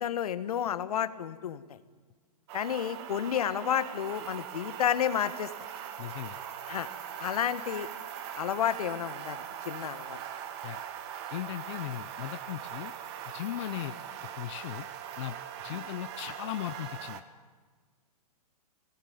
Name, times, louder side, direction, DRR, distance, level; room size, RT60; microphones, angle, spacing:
voice 1, 0.0-1.8 2.5-5.5 6.7-6.9 7.2-7.9 8.3-10.2 13.8-13.9 15.7-15.9, left 9 dB, 70° left, 13 dB, 1.5 m, -31 dB
sound 1, 2.5-17.2, right 9 dB, 45° right, 1.9 m, -41 dB
sound 2, 4.0-15.3, right 6 dB, 80° right, 5.5 m, -55 dB
voice 2, 6.0-6.4 10.6-10.8 11.3-12.9 13.3-14.0 14.4-14.9 15.2-15.4 15.6-17.2, left 14 dB, 50° left, 10 dB, 0.7 m, -37 dB
20.0 x 18.5 x 9.5 m, 1.5 s
hypercardioid pair, 140°, 20 cm